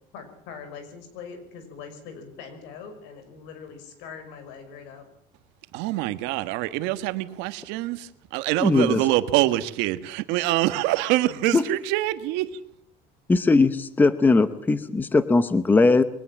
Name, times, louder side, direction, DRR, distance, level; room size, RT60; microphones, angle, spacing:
voice 1, 0.1-5.1, left 6 dB, 80° left, 8 dB, 5.8 m, -42 dB
voice 2, 5.7-12.5, right 16 dB, 80° right, 12 dB, 1.4 m, -25 dB
voice 3, 8.6-9.0 11.5-11.6 13.3-16.0, left 3 dB, 10° left, 13 dB, 0.8 m, -19 dB
22.5 x 18.5 x 7.4 m, 0.67 s
cardioid pair, 175°, 18 cm